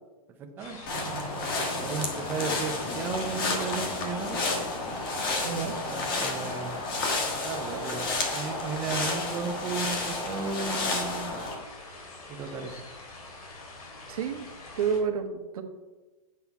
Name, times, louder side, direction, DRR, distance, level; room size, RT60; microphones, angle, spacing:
voice 1, 0.4-0.8 1.8-4.4 5.7-6.8 7.4-11.3 12.3-12.8, right 5 dB, 10° right, 4 dB, 0.4 m, -35 dB
sound 1, 0.6-15.0, left 2 dB, 75° left, 2.9 m, -45 dB
sound 2, 0.9-11.5, left 2 dB, 35° left, 1.5 m, -31 dB
voice 2, 5.4-5.8 14.1-14.5 14.8-15.3 15.5-15.6, right 7 dB, 70° right, 6 dB, 1.2 m, -29 dB
9.0 x 5.5 x 4.6 m, 1.2 s
supercardioid pair, 180°, 19 cm